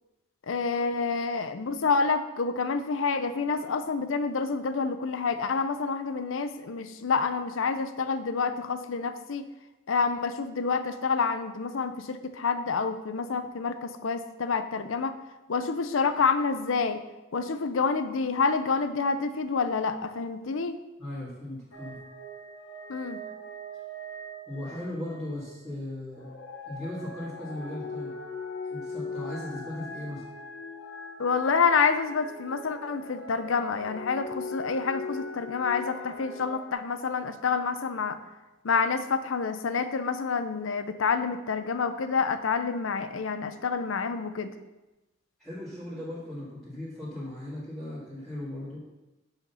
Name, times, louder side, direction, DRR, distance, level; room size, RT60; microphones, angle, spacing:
voice 1, 0.5-9.4 9.9-15.1 15.5-17.0 17.3-20.8 22.9-23.2 31.2-38.2 38.6-44.5, left 5 dB, 85° left, 10 dB, 0.6 m, -28 dB
voice 2, 21.0-22.0 24.5-26.3 26.7-28.1 28.7-30.2 45.4-48.8, left 1 dB, ahead, -13 dB, 2.1 m, -37 dB
sound 1, 21.7-25.5 26.1-36.7, left 2 dB, 70° left, 1.2 m, -40 dB
6.5 x 5.1 x 5.6 m, 1.0 s
head